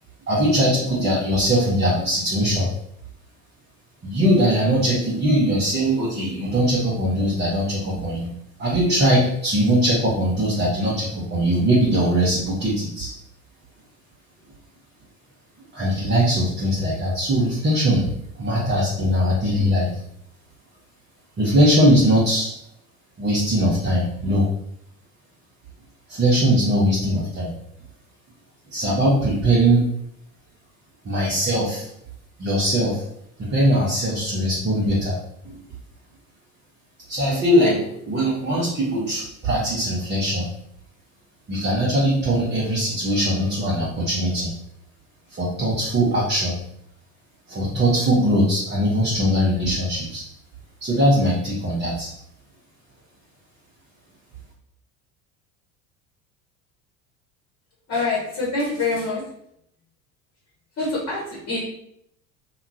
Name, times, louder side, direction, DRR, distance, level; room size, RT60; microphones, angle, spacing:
voice 1, 0.3-2.7 4.0-8.3 8.6-13.1 15.7-18.1 18.4-20.0 21.4-22.5 23.2-24.5 26.1-27.5 28.7-29.9 31.0-31.9 32.4-33.1 33.4-35.2 35.4-35.6 37.1-40.5 41.5-44.5 45.3-46.6 47.5-50.2 50.8-52.1, equal, 25° right, -6 dB, 0.9 m, -21 dB
voice 2, 57.9-59.2 60.8-61.6, left 3 dB, 35° left, -4 dB, 1.2 m, -25 dB
2.9 x 2.3 x 2.7 m, 0.73 s
hypercardioid pair, 75°, 42 cm